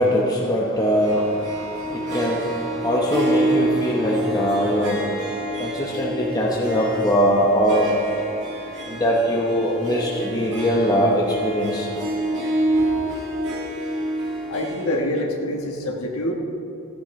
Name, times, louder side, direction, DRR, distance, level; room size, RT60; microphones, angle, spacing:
voice 1, 0.0-1.3 1.8-2.5 2.8-5.0 5.6-8.0 8.9-11.9, equal, 20° left, -3 dB, 0.9 m, -21 dB
Harp, 1.0-15.0, right 1 dB, 60° right, 2.3 m, -27 dB
voice 2, 14.5-16.3, left 1 dB, 75° left, 0 dB, 1.4 m, -26 dB
15.0 x 10.0 x 3.2 m, 2.9 s
head